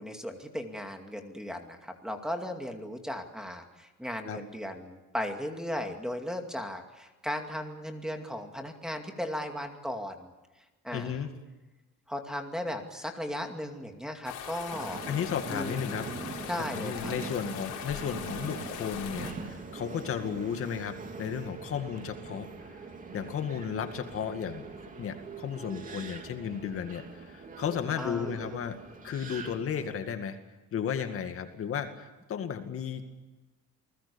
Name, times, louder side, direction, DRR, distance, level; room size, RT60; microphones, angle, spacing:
voice 1, 0.0-10.3 10.8-11.2 12.1-15.0 15.5-15.9 16.5-17.1 28.0-28.6, equal, ahead, 4 dB, 2.4 m, -36 dB
voice 2, 10.9-11.3 15.1-22.5 23.1-24.6 25.0-28.8 29.0-30.4 30.7-33.0, left 8 dB, 45° left, 7 dB, 2.2 m, -34 dB
sound 1, 14.2-19.3, left 9 dB, 85° left, 4.9 m, -41 dB
Subway metro underground, 14.7-30.0, right 4 dB, 25° right, 2.9 m, -43 dB
29.5 x 20.5 x 7.1 m, 1.1 s
cardioid pair, 160°, 30 cm